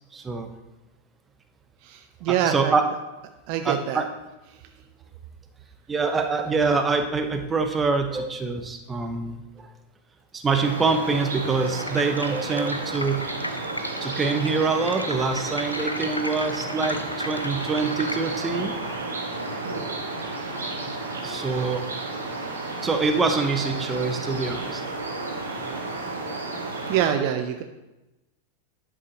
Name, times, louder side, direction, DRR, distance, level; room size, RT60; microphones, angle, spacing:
voice 1, 0.1-0.5 2.3-2.8 3.6-4.1 5.9-9.7 10.3-13.2 14.0-18.7 21.2-21.8 22.8-24.8, right 4 dB, 15° right, 6 dB, 0.9 m, -25 dB
voice 2, 1.8-2.7 3.5-4.0 26.9-27.6, right 9 dB, 45° right, 7 dB, 0.5 m, -25 dB
sound 1, 10.5-27.1, right 2 dB, 70° right, 1.6 m, -32 dB
sound 2, 11.8-18.2, left 1 dB, 85° left, 0.6 m, -35 dB
11.0 x 7.2 x 2.9 m, 1.0 s
figure-of-eight pair, 90°, 0 cm